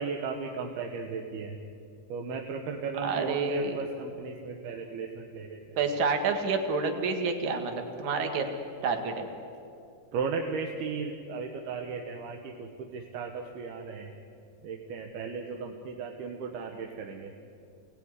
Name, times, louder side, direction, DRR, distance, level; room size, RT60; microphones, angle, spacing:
voice 1, 0.0-1.6 2.1-5.8 10.1-14.1 14.6-17.3, right 5 dB, 85° right, 2 dB, 3.4 m, -36 dB
voice 2, 3.0-3.8 5.8-8.5 8.8-9.3, right 4 dB, 55° right, 4 dB, 3.4 m, -28 dB
27.0 x 19.5 x 9.8 m, 2.6 s
omnidirectional pair, 4.4 m